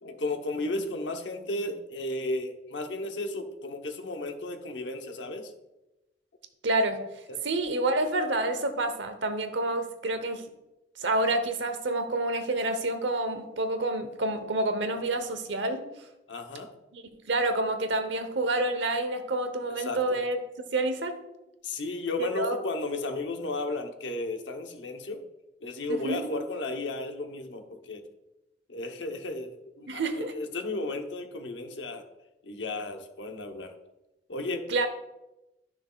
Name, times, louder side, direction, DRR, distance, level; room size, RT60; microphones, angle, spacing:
voice 1, 0.0-5.5 7.3-7.4 16.3-16.7 19.8-20.2 21.6-25.2 25.6-28.0 28.7-32.0 32.4-33.7 34.3-34.6, left 2 dB, 85° left, 5 dB, 0.9 m, -34 dB
voice 2, 6.6-7.0 7.4-10.5 11.0-15.9 16.9-20.4 20.7-21.2 22.2-22.6 25.9-26.3 29.9-30.3 34.7-34.9, right 2 dB, 85° right, 8 dB, 0.9 m, -28 dB
11.5 x 6.2 x 2.4 m, 0.96 s
head